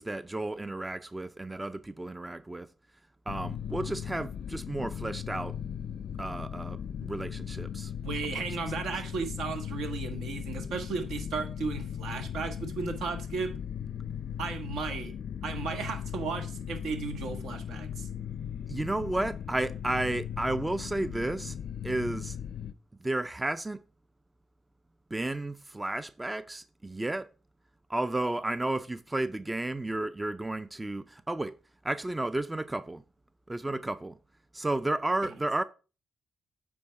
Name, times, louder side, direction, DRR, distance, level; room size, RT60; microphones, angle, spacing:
voice 1, 0.0-2.7 3.3-5.6 6.2-7.9 8.2-8.3 18.7-21.6 21.8-22.4 23.0-23.8 25.1-27.3 27.9-31.6 31.8-33.0 33.5-34.2 34.5-35.6, right 2 dB, 15° right, 0.4 m, -32 dB
sound 1, 3.3-22.7, left 8 dB, 65° left, 0.4 m, -38 dB
voice 2, 8.0-13.5 14.4-15.1 15.4-18.1, right 4 dB, 75° right, 1.5 m, -35 dB
8.5 x 4.2 x 4.5 m
cardioid pair, 90°, 0 cm